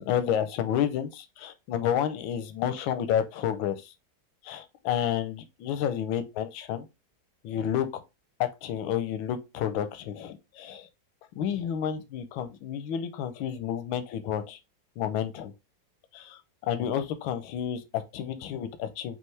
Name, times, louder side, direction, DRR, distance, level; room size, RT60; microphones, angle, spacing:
voice 1, 0.0-3.9 4.4-6.8 7.4-8.0 8.4-10.9 11.4-14.6 15.0-15.5 16.1-19.2, left 9 dB, 90° left, 1.4 m, -30 dB
5.5 x 2.7 x 3.2 m
omnidirectional pair, 2.1 m